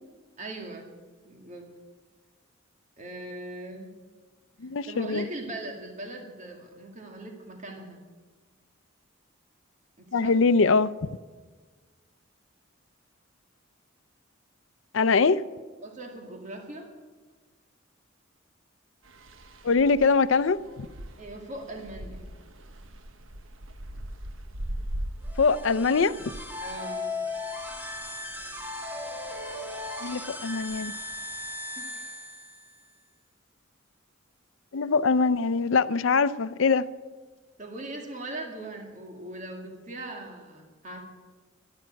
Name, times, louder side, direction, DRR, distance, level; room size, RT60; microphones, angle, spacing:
voice 1, 0.4-1.0 1.2-1.7 3.0-3.9 4.9-8.0 10.0-10.3 15.8-16.9 21.2-22.3 26.6-27.1 31.8-32.1 37.6-41.0, right 2 dB, 40° right, 2.2 m, -40 dB
voice 2, 4.6-5.3 10.1-10.9 14.9-15.4 19.6-20.9 25.4-26.2 30.0-30.9 34.7-36.8, left 4 dB, 75° left, 0.5 m, -23 dB
sound 1, 19.0-31.5, right 1 dB, 80° right, 1.1 m, -42 dB
sound 2, 25.2-32.9, left 2 dB, 10° right, 2.1 m, -37 dB
13.0 x 12.0 x 9.3 m
head